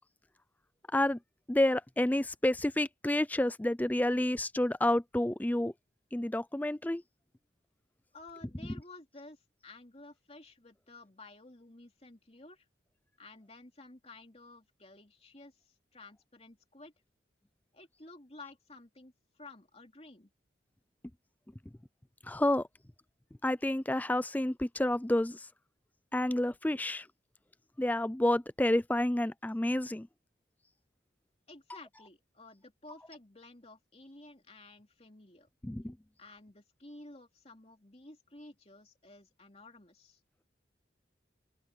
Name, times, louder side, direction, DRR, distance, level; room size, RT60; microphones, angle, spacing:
voice 1, 1.5-5.7 6.1-7.0 22.2-22.7 23.4-25.5 26.1-27.1 27.8-30.1 35.6-36.0, left 1 dB, 10° left, 0.4 m, -29 dB
voice 2, 8.1-12.7 13.2-16.9 17.7-20.3 31.5-35.5 36.2-40.2, left 2 dB, 35° left, 2.9 m, -53 dB
open air
head